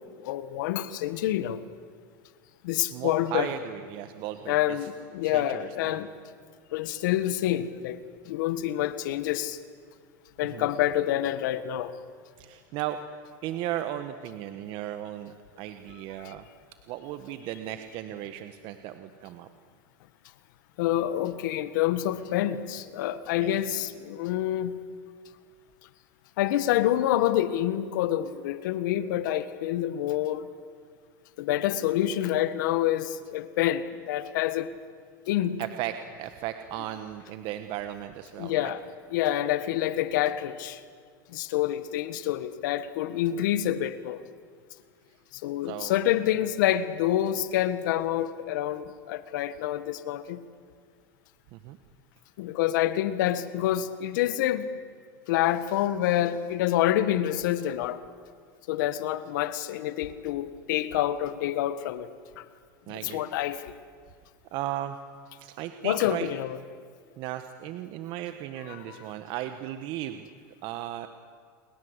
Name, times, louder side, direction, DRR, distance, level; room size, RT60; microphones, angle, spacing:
voice 1, 0.2-1.6 2.6-3.5 4.5-6.1 6.7-9.6 10.4-11.9 16.2-16.3 20.8-24.8 26.4-30.5 31.4-34.7 35.3-35.6 38.4-38.8 39.1-40.8 41.3-44.2 45.3-50.4 52.4-54.7 55.3-58.0 58.7-62.1 62.4-62.5 62.9-63.7 65.8-66.6 68.6-69.0, left 12 dB, 75° left, 1.6 m, -27 dB
voice 2, 2.9-4.9 5.2-6.0 10.4-10.7 12.4-13.0 13.4-16.4 16.9-19.5 23.3-23.6 35.6-38.7 45.6-46.1 51.5-51.8 55.7-56.2 62.9-63.2 64.5-65.0 65.4-66.3 67.2-70.3 70.6-71.1, right 12 dB, 55° right, 1.4 m, -36 dB
29.5 x 21.5 x 8.2 m
supercardioid pair, 125°, 10 cm